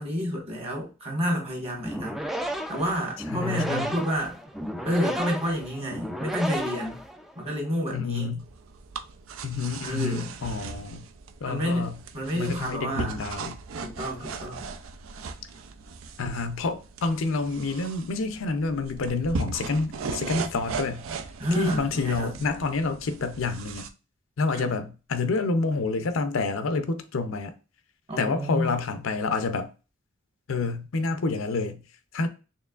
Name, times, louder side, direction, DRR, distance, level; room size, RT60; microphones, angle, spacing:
voice 1, 0.0-2.2 2.7-4.4 4.8-7.0 7.4-8.3 9.8-10.3 11.5-13.1 13.8-14.7 21.4-22.3 24.5-24.8 28.1-28.7, equal, 30° right, 1.5 m, -29 dB
sound 1, 1.8-7.5, equal, ahead, 0.3 m, -33 dB
voice 2, 3.3-4.0 7.9-8.4 9.4-11.1 11.4-12.0 12.3-13.6 16.2-21.1 21.6-23.9 24.4-27.5 28.2-29.7 30.5-31.8 32.1-32.3, left 3 dB, 80° left, 0.5 m, -28 dB
sound 2, 8.4-23.9, right 4 dB, 80° right, 0.4 m, -38 dB
4.5 x 3.2 x 2.4 m
head